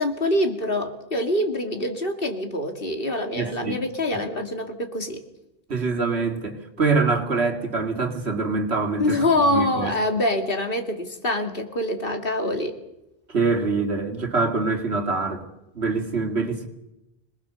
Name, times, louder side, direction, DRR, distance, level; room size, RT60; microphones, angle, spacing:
voice 1, 0.0-5.2 9.0-12.8, left 1 dB, 60° left, 5 dB, 2.6 m, -25 dB
voice 2, 3.3-3.8 5.7-9.9 13.3-15.5 15.7-16.7, right 4 dB, 85° right, 5 dB, 2.7 m, -24 dB
25.5 x 20.0 x 6.9 m, 0.91 s
omnidirectional pair, 1.1 m